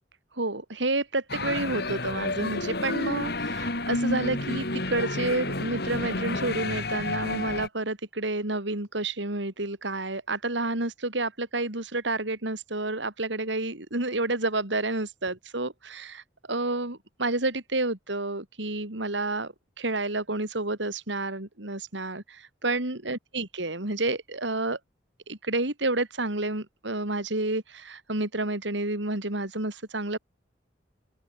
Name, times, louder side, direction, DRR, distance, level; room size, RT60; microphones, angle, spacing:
voice 1, 0.4-16.2 16.5-24.8 25.3-30.2, right 2 dB, 75° right, 3.7 m, -30 dB
sound 1, 1.3-7.7, left 2 dB, 55° left, 5.2 m, -30 dB
open air
head